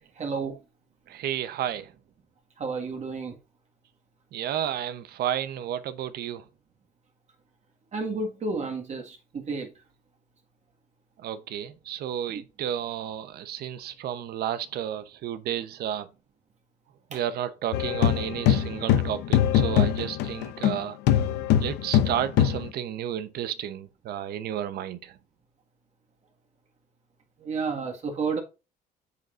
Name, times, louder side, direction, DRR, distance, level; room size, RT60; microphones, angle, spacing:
voice 1, 0.2-0.6 2.6-3.4 7.9-9.7 12.3-12.4 17.1-17.2 27.4-28.4, right 4 dB, 45° right, 1.9 m, -31 dB
voice 2, 1.1-1.9 4.3-6.4 11.2-16.1 17.1-21.0 21.6-25.2, right 10 dB, 70° right, 0.9 m, -32 dB
sound 1, 17.7-20.8 21.1-22.7, left 10 dB, 85° left, 0.8 m, -22 dB
8.5 x 6.6 x 2.6 m
cardioid pair, 110°, 17 cm